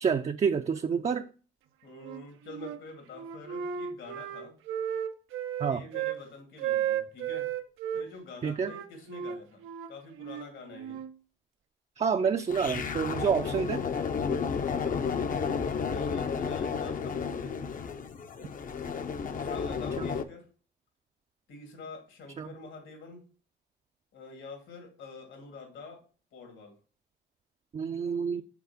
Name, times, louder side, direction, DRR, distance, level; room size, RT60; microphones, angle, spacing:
voice 1, 0.0-1.2 5.6-5.8 8.4-8.7 12.0-13.8 22.4-22.5 27.7-28.4, right 6 dB, 35° right, 0.5 m, -28 dB
voice 2, 1.8-4.5 5.7-7.5 7.9-11.0 14.7-15.6 15.9-17.6 19.2-20.5 21.5-23.2 24.1-26.0 26.3-26.8, left 3 dB, 75° left, 2.5 m, -47 dB
Wind instrument woodwind instrument, 2.0-2.8 3.1-6.2 6.6-8.1 8.6-11.1, right 9 dB, 85° right, 0.7 m, -34 dB
sound 1, 12.5-20.2, left 6 dB, 45° left, 0.7 m, -32 dB
6.0 x 4.3 x 5.7 m
cardioid pair, 90°, 20 cm